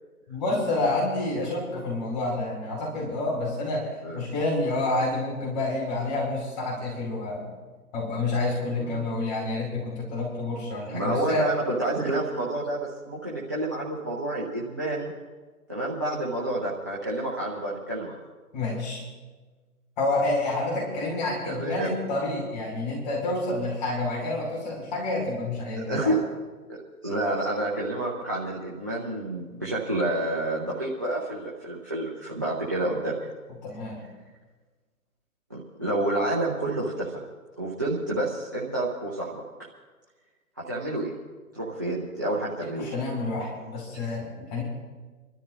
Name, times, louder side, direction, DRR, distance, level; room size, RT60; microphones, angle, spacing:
voice 1, 0.3-7.6 7.9-11.5 18.5-19.0 20.0-26.1 33.6-34.0 42.6-44.6, left 2 dB, 30° left, -4 dB, 5.2 m, -28 dB
voice 2, 10.9-15.1 15.7-18.2 21.5-21.9 25.8-26.2 26.7-33.3 35.5-37.1 37.6-39.4 40.7-41.1 41.5-42.9, right 1 dB, 15° right, -7 dB, 0.6 m, -29 dB
29.0 x 13.0 x 2.7 m, 1.3 s
figure-of-eight pair, 145°, 45 cm